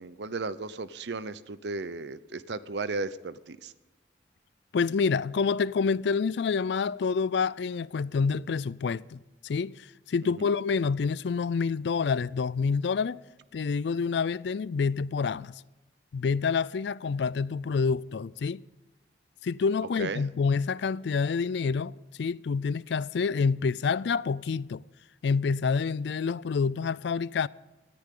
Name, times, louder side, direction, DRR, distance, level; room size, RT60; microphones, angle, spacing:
voice 1, 0.0-3.7 10.4-10.5 20.0-20.3, right 3 dB, 70° right, 0.7 m, -35 dB
voice 2, 4.7-13.2 13.5-15.5 16.1-18.6 19.4-24.8 25.2-27.5, left 5 dB, 70° left, 0.4 m, -28 dB
19.5 x 14.0 x 3.8 m
head